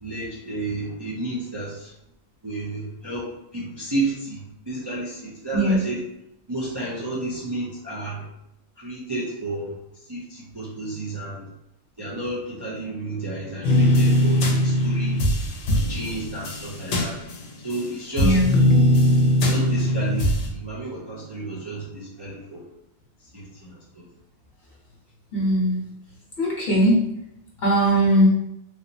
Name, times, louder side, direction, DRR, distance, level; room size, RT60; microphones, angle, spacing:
voice 1, 0.0-1.9 2.4-4.4 4.7-6.0 6.5-8.3 8.8-9.7 10.1-11.5 12.0-15.2 15.7-17.1 17.6-18.4 19.4-22.6 23.3-24.1, right 2 dB, 30° right, -7 dB, 0.5 m, -31 dB
sound 1, 13.6-17.8 18.2-20.5, left 1 dB, 65° left, 0.8 m, -20 dB
voice 2, 18.2-18.5 25.3-25.8 26.4-27.0 27.6-28.3, equal, 45° left, -5 dB, 1.2 m, -19 dB
3.4 x 2.7 x 2.8 m, 0.82 s
omnidirectional pair, 1.2 m